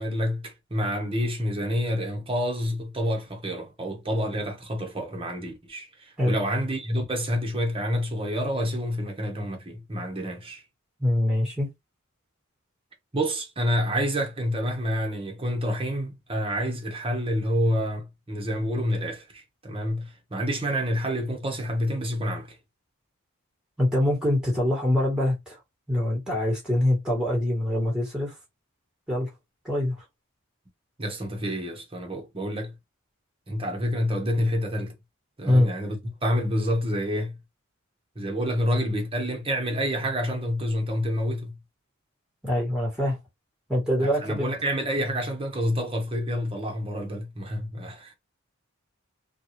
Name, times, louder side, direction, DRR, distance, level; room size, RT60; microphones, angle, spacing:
voice 1, 0.0-10.6 13.1-22.6 31.0-32.7 33.5-34.9 35.4-37.4 38.1-41.5 44.0-48.1, equal, 25° right, 1.2 m, -28 dB
voice 2, 11.0-11.7 23.8-25.6 25.9-28.3 29.1-29.3 29.6-30.0 35.5-35.7 42.4-43.2 43.7-44.6, left 1 dB, 5° right, 1.8 m, -24 dB
4.5 x 2.6 x 3.1 m
head